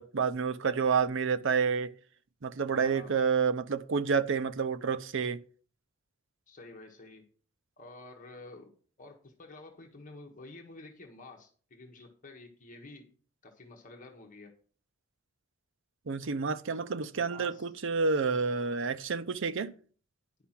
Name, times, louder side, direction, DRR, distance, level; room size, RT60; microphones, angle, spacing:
voice 1, 0.0-1.9 2.4-5.4 16.1-19.7, right 5 dB, 65° right, 0.6 m, -29 dB
voice 2, 2.7-3.1 6.5-7.3 7.8-13.1 13.4-14.5 17.1-17.7, left 2 dB, 40° left, 1.3 m, -50 dB
10.0 x 5.8 x 5.8 m
head